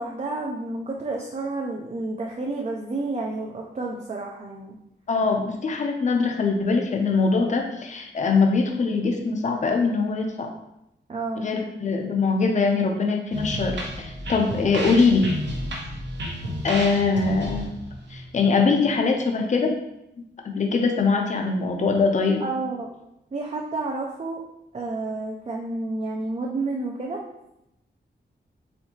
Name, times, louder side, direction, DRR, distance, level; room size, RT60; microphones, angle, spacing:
voice 1, 0.0-4.8 11.1-11.5 22.4-22.9 23.3-24.4 24.7-27.2, right 2 dB, 35° right, -1 dB, 0.5 m, -30 dB
voice 2, 5.1-10.5 11.4-15.4 16.6-17.7 18.1-19.7 20.4-22.4, left 4 dB, 40° left, 3 dB, 0.5 m, -22 dB
sound 1, 13.3-18.9, equal, 70° right, 0.8 m, -32 dB
4.3 x 3.7 x 2.8 m, 0.85 s
wide cardioid pair, 180°, 19 cm